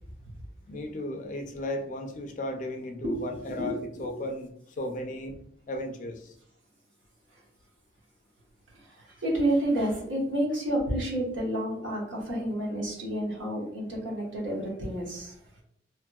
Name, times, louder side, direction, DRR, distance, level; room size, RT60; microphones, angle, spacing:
voice 1, 0.7-5.4 5.7-6.3, left 1 dB, 40° left, 5 dB, 0.4 m, -35 dB
voice 2, 3.0-4.1 7.3-7.4 8.7-15.4, right 1 dB, 85° right, -2 dB, 1.0 m, -30 dB
2.9 x 2.7 x 2.2 m, 0.68 s
head